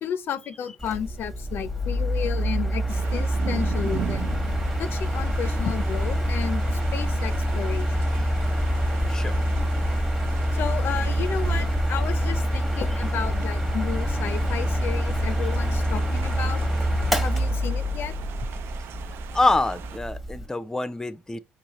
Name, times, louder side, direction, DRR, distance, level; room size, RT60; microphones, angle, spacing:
voice 1, 0.0-4.3 4.8-6.6 6.9-7.9 10.5-16.6 17.2-18.1, left 8 dB, 65° left, 0.5 m, -32 dB
Mechanical fan, 0.8-20.5, equal, 5° right, 1.0 m, -26 dB
sound 1, 2.9-20.0, right 11 dB, 70° right, 0.3 m, -39 dB
voice 2, 19.3-21.4, left 2 dB, 15° left, 0.5 m, -25 dB
4.8 x 3.4 x 3.0 m
supercardioid pair, 75°, 4 cm